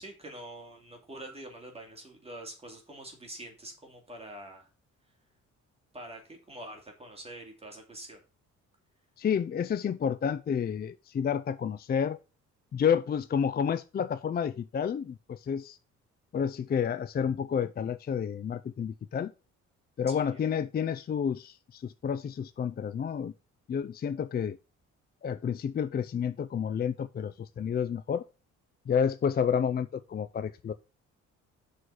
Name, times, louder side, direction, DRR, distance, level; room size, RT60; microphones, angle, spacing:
voice 1, 0.0-4.7 5.9-8.2 20.1-20.4, right 1 dB, 20° right, 2.6 m, -45 dB
voice 2, 9.2-12.2 12.7-15.8 16.3-19.3 20.0-23.3 23.7-24.6 25.2-28.2 28.9-30.7, left 7 dB, 30° left, 0.4 m, -30 dB
6.3 x 4.3 x 6.4 m
cardioid pair, 90°, 30 cm